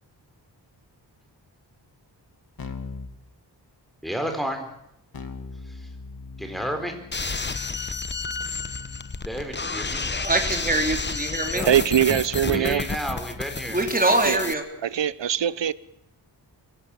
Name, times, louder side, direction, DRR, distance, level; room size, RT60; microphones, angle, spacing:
Keyboard (musical), 2.6-3.1 5.1-14.0, left 4 dB, 55° left, 2.4 m, -41 dB
voice 1, 4.0-4.7 5.6-5.9 6.4-7.0 9.2-10.0 11.5-11.7 12.5-13.8, equal, ahead, 4.4 m, -31 dB
sound 1, 7.1-14.5, left 4 dB, 25° left, 1.0 m, -31 dB
voice 2, 10.1-11.6 13.7-14.6, right 2 dB, 20° right, 3.4 m, -23 dB
voice 3, 11.7-12.8 14.3-14.4 14.8-15.7, right 10 dB, 85° right, 1.0 m, -22 dB
24.5 x 17.0 x 8.6 m
wide cardioid pair, 160°, 42 cm